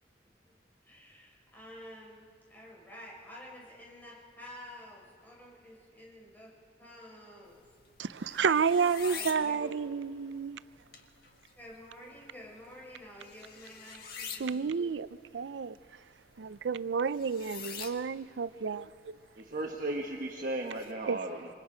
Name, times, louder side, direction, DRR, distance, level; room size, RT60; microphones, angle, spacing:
voice 1, 0.8-6.5 6.8-7.6 9.0-9.8 11.6-15.0, left 1 dB, 10° left, 4.3 m, -50 dB
sound 1, 7.4-20.9, left 6 dB, 60° left, 1.7 m, -48 dB
voice 2, 8.0-10.6 14.4-15.1 15.3-15.7 16.4-19.2 21.1-21.2, right 6 dB, 85° right, 0.5 m, -30 dB
voice 3, 19.4-21.5, right 2 dB, 50° right, 1.3 m, -35 dB
27.0 x 24.5 x 5.1 m
head